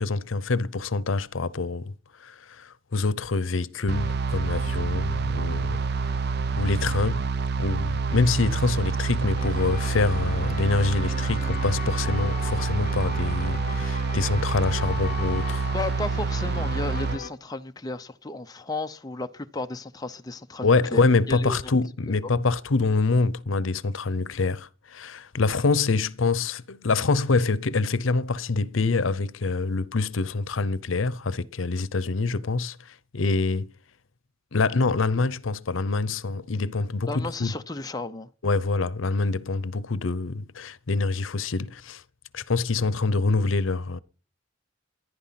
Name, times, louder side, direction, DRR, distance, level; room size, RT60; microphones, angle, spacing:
voice 1, 0.0-1.9 2.2-5.8 6.6-7.2 7.6-15.7 20.6-33.7 34.5-37.5 38.4-42.0 42.3-44.0, left 3 dB, 85° left, 0.7 m, -25 dB
sound 1, 3.9-17.2, right 4 dB, 55° right, 0.6 m, -27 dB
sound 2, 9.4-17.3, left 6 dB, 45° left, 0.9 m, -38 dB
voice 2, 15.7-21.7 37.1-38.3, left 2 dB, 20° left, 0.7 m, -33 dB
14.5 x 11.0 x 5.8 m
head